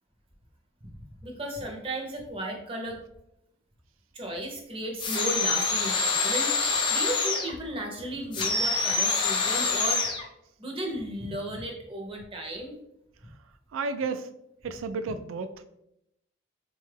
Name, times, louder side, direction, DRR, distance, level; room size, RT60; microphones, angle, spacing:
voice 1, 0.9-3.0 4.1-10.0 10.6-12.8, right 1 dB, 25° right, 1 dB, 0.6 m, -35 dB
sound 1, 5.0-7.6 8.3-10.2, left 4 dB, 25° left, 0.3 m, -26 dB
voice 2, 13.7-14.3 14.6-15.6, right 4 dB, 85° right, 10 dB, 0.3 m, -32 dB
4.1 x 2.3 x 3.2 m, 0.80 s
head